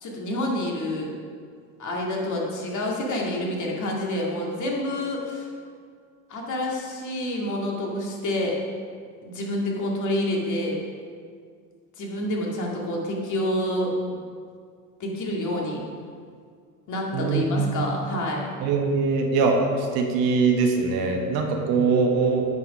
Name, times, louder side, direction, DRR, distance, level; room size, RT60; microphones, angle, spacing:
voice 1, 0.0-1.1 1.8-5.5 6.3-8.6 9.2-10.8 12.0-14.2 15.0-15.8 16.9-18.5, left 1 dB, 45° left, -2 dB, 2.2 m, -28 dB
voice 2, 17.1-17.7 18.6-19.6 19.9-22.5, right 4 dB, 55° right, 2 dB, 1.5 m, -22 dB
8.4 x 5.5 x 5.4 m, 2.1 s
hypercardioid pair, 85°, 43 cm